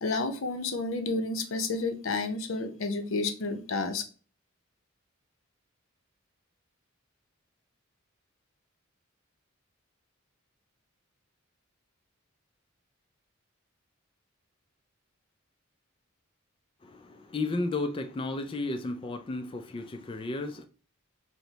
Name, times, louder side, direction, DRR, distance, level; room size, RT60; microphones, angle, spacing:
voice 1, 0.0-4.0, left 3 dB, 70° left, 0.6 m, -30 dB
voice 2, 16.8-20.6, left 2 dB, 25° left, 0.3 m, -33 dB
4.5 x 2.1 x 3.9 m
head